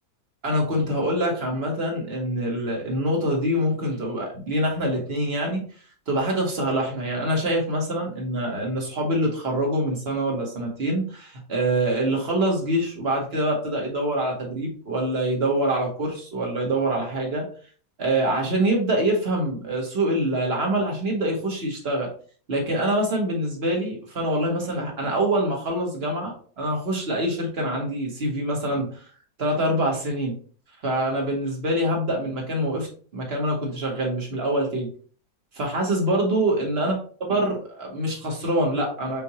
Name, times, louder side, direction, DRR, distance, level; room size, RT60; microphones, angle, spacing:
voice 1, 0.4-5.6 6.1-17.4 18.0-22.1 22.5-29.0 29.4-30.3 30.8-32.9 33.1-34.9 35.5-36.9 37.2-39.2, right 1 dB, 40° right, -1 dB, 1.4 m, -25 dB
5.6 x 2.6 x 2.9 m, 0.43 s
omnidirectional pair, 1.8 m